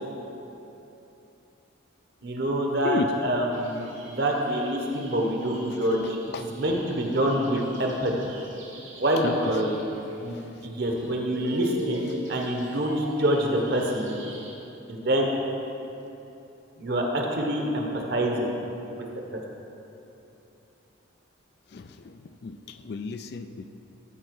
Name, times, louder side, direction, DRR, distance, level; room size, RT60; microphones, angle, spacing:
voice 1, 2.2-3.8 4.0-8.1 9.0-9.8 10.2-14.1 14.9-15.3 16.8-18.5 19.0-19.1, right 1 dB, 50° right, 0 dB, 1.1 m, -26 dB
sound 1, 3.5-14.5, equal, 70° right, 1.5 m, -44 dB
voice 2, 21.7-23.7, left 5 dB, 50° left, 9 dB, 0.3 m, -33 dB
13.0 x 4.8 x 4.7 m, 2.9 s
head